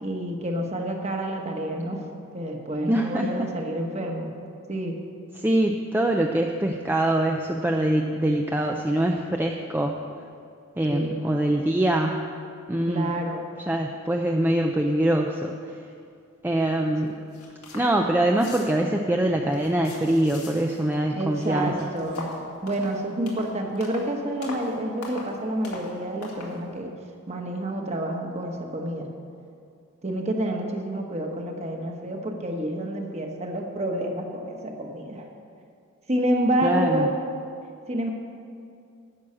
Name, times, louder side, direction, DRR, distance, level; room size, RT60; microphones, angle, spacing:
voice 1, 0.0-2.0 2.3-4.3 4.7-5.0 10.9-11.4 12.9-13.5 17.0-17.1 21.1-22.3 22.6-26.9 27.3-29.1 30.0-35.3 36.1-37.1 37.9-38.1, right 1 dB, 30° right, 2 dB, 1.1 m, -28 dB
voice 2, 2.9-3.5 5.4-10.0 10.8-12.3 12.7-13.1 13.7-15.5 16.4-17.2 17.7-21.7 36.6-37.1, right 1 dB, 10° right, 2 dB, 0.4 m, -24 dB
sound 1, 17.0-17.1 17.3-17.9 18.2-18.9 19.4-21.0 21.3-24.1 24.4-24.7 25.0-25.4 25.6-25.9 26.2-26.6, left 2 dB, 85° left, 2.2 m, -40 dB
11.0 x 6.2 x 8.5 m, 2.5 s
head